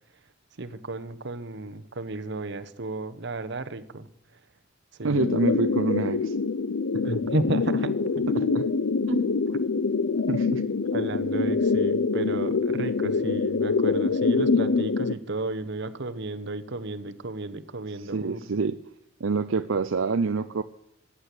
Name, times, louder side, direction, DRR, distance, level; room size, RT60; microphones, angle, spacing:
voice 1, 0.6-4.1 5.0-5.3 7.0-8.0 10.9-18.4, right 2 dB, 60° right, 11 dB, 1.1 m, -33 dB
voice 2, 5.0-6.3 6.9-7.0 8.3-8.7 9.1-9.3 10.3-10.6 18.0-18.8 19.2-20.6, right 4 dB, 80° right, 10 dB, 0.6 m, -27 dB
sound 1, 5.2-15.1, left 4 dB, 85° left, 0.6 m, -25 dB
15.0 x 10.0 x 8.4 m, 0.78 s
head